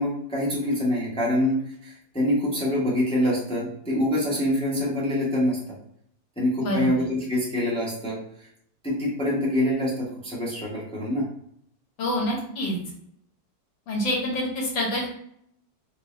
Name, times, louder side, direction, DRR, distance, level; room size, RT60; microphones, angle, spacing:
voice 1, 0.0-5.6 6.4-8.5 8.8-11.3, left 1 dB, 5° left, -5 dB, 0.4 m, -25 dB
voice 2, 12.0-12.8 13.9-15.1, left 1 dB, 85° left, -3 dB, 1.9 m, -26 dB
4.4 x 2.3 x 3.0 m, 0.70 s
omnidirectional pair, 2.0 m